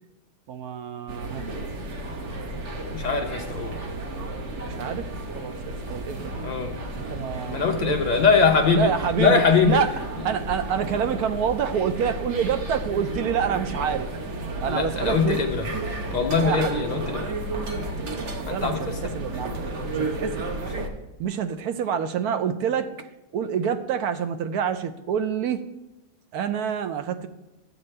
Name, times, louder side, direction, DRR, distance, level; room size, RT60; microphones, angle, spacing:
voice 1, 0.5-1.5 4.6-6.5 7.0-7.9 8.7-9.9 10.2-14.1 14.6-15.4 16.4-16.9 18.5-19.5 19.9-20.5 21.2-25.6 26.3-27.3, right 7 dB, 70° right, 9 dB, 1.1 m, -27 dB
sound 1, 1.1-20.9, right 2 dB, 50° right, 1.2 m, -32 dB
voice 2, 2.9-3.8 6.4-6.7 7.5-9.8 14.7-15.7 16.1-17.2 18.5-19.0, left 5 dB, 90° left, 3 dB, 0.3 m, -22 dB
11.0 x 8.0 x 3.3 m, 1.0 s
omnidirectional pair, 1.8 m